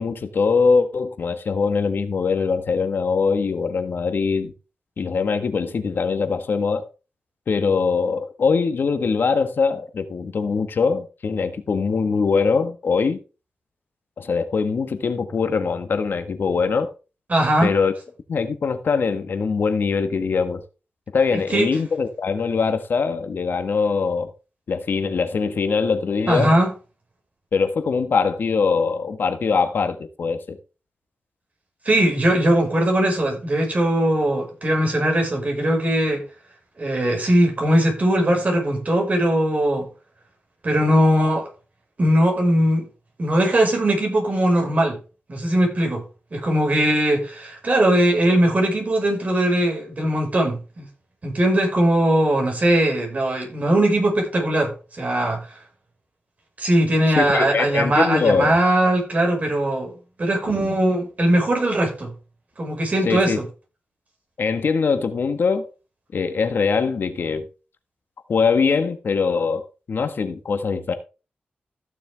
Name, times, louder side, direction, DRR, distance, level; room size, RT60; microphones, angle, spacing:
voice 1, 0.0-4.5 5.0-6.9 7.5-13.2 14.2-16.9 17.6-17.9 18.3-20.6 21.1-24.3 24.7-26.5 27.5-30.6 57.1-58.6 60.5-60.7 63.0-63.4 64.4-65.7 66.1-67.5 68.3-70.9, left 5 dB, 70° left, 1.5 m, -22 dB
voice 2, 17.3-17.7 21.3-21.7 26.3-26.7 31.9-36.2 36.8-39.9 40.6-41.5 42.0-42.9 43.2-45.0 45.3-46.0 46.3-50.9 51.2-55.5 56.6-59.9 60.2-62.1 62.6-63.5, right 1 dB, 45° right, 5.2 m, -20 dB
15.0 x 6.9 x 3.5 m
wide cardioid pair, 80°, 4 cm